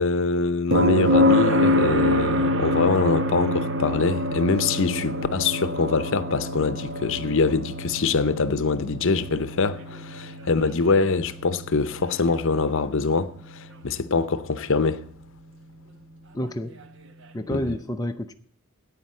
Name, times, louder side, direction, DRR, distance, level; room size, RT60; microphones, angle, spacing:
voice 1, 0.0-15.0 17.5-17.6, left 4 dB, 60° left, 0.7 m, -24 dB
sound 1, 0.7-14.6 16.8-16.9, left 1 dB, 60° right, 1.0 m, -26 dB
voice 2, 16.3-16.8 17.3-18.3, left 1 dB, 15° left, 0.5 m, -29 dB
9.8 x 8.9 x 7.5 m
head